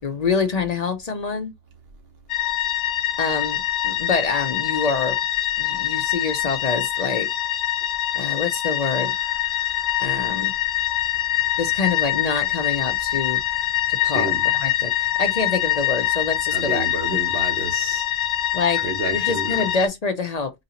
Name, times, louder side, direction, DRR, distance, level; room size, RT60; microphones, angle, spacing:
voice 1, 0.0-1.5 3.2-5.2 5.6-7.3 8.1-9.1 10.0-10.5 11.6-16.9 18.5-18.8 19.1-20.5, left 4 dB, 45° left, 0.5 m, -26 dB
sound 1, 2.3-19.9, left 12 dB, 75° left, 0.9 m, -24 dB
voice 2, 16.5-18.1 18.8-19.6, right 3 dB, 60° right, 0.9 m, -30 dB
4.0 x 2.6 x 2.8 m
omnidirectional pair, 1.2 m